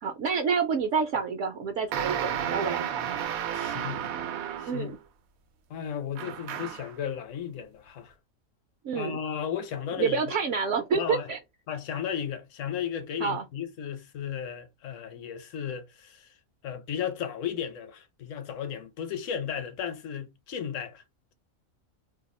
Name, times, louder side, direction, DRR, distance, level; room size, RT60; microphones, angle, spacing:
voice 1, 0.0-3.1 4.7-5.0 8.8-9.2 10.0-11.4 13.2-13.4, right 5 dB, 70° right, 0.9 m, -28 dB
sound 1, 1.9-4.9 6.1-6.9, right 9 dB, 90° right, 1.1 m, -32 dB
voice 2, 3.5-4.0 4.6-4.9 5.7-8.1 8.9-10.2 10.9-11.3 11.7-16.3 16.6-21.0, left 8 dB, 70° left, 1.0 m, -34 dB
2.7 x 2.3 x 4.1 m
omnidirectional pair, 1.4 m